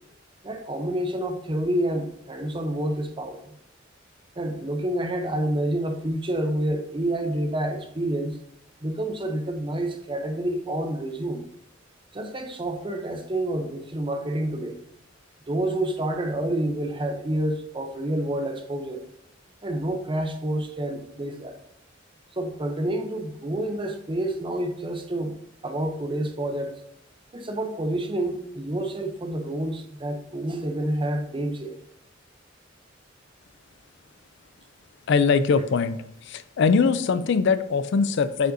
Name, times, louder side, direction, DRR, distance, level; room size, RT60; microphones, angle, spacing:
voice 1, 0.4-3.4 4.4-8.4 8.8-11.4 12.1-14.8 15.5-19.0 19.6-21.6 22.4-25.3 25.6-26.7 27.3-31.8, right 1 dB, 25° right, 6 dB, 0.7 m, -28 dB
voice 2, 35.1-36.0 36.2-38.5, left 5 dB, 65° left, 13 dB, 0.4 m, -21 dB
7.7 x 5.2 x 2.7 m, 0.74 s
head